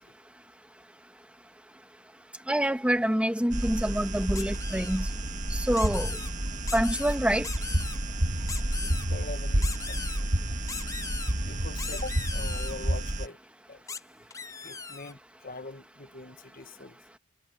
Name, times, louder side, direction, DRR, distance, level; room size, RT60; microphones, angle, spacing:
voice 1, 2.5-5.1 5.7-6.2 6.7-7.5, right 1 dB, 5° right, 1.9 m, -26 dB
sound 1, 3.5-13.3, right 1 dB, 40° right, 1.7 m, -30 dB
sound 2, 4.3-5.0 5.7-6.3 6.7-7.2 7.4-8.0 8.5-9.0 9.6-10.2 10.7-11.3 11.8-12.7 13.9-14.0 14.3-15.1, left 5 dB, 15° left, 0.5 m, -38 dB
voice 2, 8.8-10.3 11.4-13.4 13.7-13.8 14.6-17.0, left 3 dB, 45° left, 1.5 m, -43 dB
head